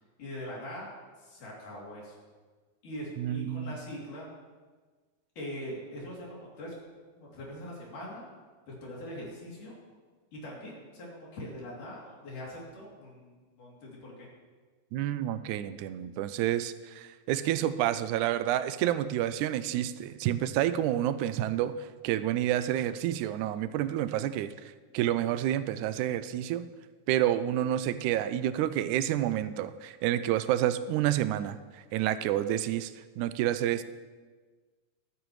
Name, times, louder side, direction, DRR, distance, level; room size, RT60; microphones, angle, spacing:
voice 1, 0.2-0.9 1.2-2.2 2.8-4.3 5.4-6.7 7.2-8.3 8.7-9.8 10.3-14.3, equal, 80° left, -4 dB, 4.6 m, -42 dB
voice 2, 3.2-3.7 14.9-26.7 27.1-33.8, right 12 dB, 80° right, 12 dB, 2.0 m, -29 dB
22.5 x 9.1 x 3.2 m, 1.4 s
omnidirectional pair, 3.6 m